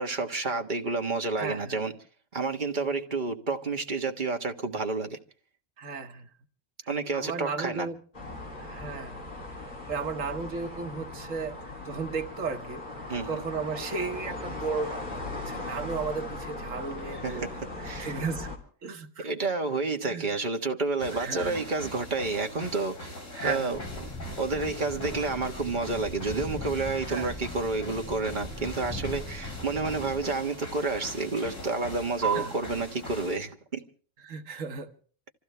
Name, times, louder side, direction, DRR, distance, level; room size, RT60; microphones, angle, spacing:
voice 1, 0.0-1.9 2.3-5.2 6.9-7.9 13.1-13.4 17.1-18.2 19.2-23.1 23.4-23.8 24.4-33.8, right 3 dB, 40° right, 1.6 m, -30 dB
voice 2, 1.4-1.8 5.8-6.3 7.1-8.0 8.6-9.2 9.9-11.6 11.8-17.5 18.0-18.5 18.8-19.3 20.0-20.2 21.2-21.7 23.3-23.8 27.1-27.3 32.3-32.5 34.2-34.9, right 4 dB, 80° right, 1.6 m, -34 dB
sound 1, 8.1-18.6, left 2 dB, 40° left, 3.3 m, -38 dB
sound 2, 21.0-33.4, right 2 dB, 75° left, 4.1 m, -40 dB
sound 3, 23.7-30.2, left 1 dB, 5° left, 1.3 m, -40 dB
27.0 x 15.0 x 3.3 m
omnidirectional pair, 1.3 m